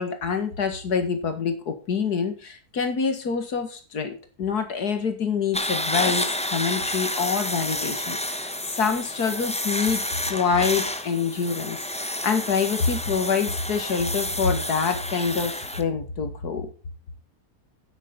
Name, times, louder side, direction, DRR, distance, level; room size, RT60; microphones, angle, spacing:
voice 1, 0.0-16.7, left 5 dB, 70° left, 7 dB, 2.3 m, -26 dB
sound 1, 5.5-15.8, left 1 dB, 5° left, 0.7 m, -30 dB
9.4 x 8.5 x 5.3 m, 0.36 s
omnidirectional pair, 1.7 m